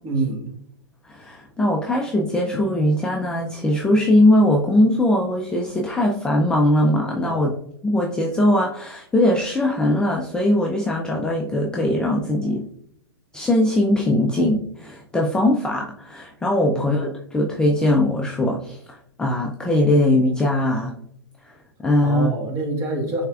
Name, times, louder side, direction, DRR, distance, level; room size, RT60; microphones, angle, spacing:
voice 1, 0.0-0.5 7.2-7.5 16.7-16.9 22.0-23.3, right 2 dB, 20° right, 0 dB, 1.3 m, -26 dB
voice 2, 1.0-7.5 7.8-12.6 13.3-20.9 21.5-21.6 21.8-22.3, left 1 dB, 5° left, -1 dB, 0.4 m, -20 dB
5.5 x 3.4 x 2.3 m, 0.69 s
hypercardioid pair, 120°, 13 cm